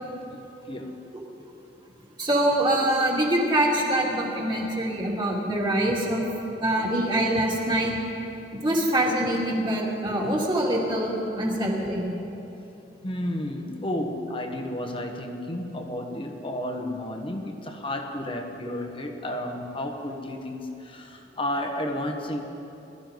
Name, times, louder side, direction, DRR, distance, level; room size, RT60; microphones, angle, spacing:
voice 1, 0.7-1.0 13.0-22.4, left 1 dB, 30° left, 3 dB, 1.3 m, -32 dB
voice 2, 2.2-6.2 6.6-8.0 8.6-12.1, right 1 dB, 25° right, -3 dB, 2.6 m, -24 dB
21.5 x 13.5 x 4.0 m, 3.0 s
head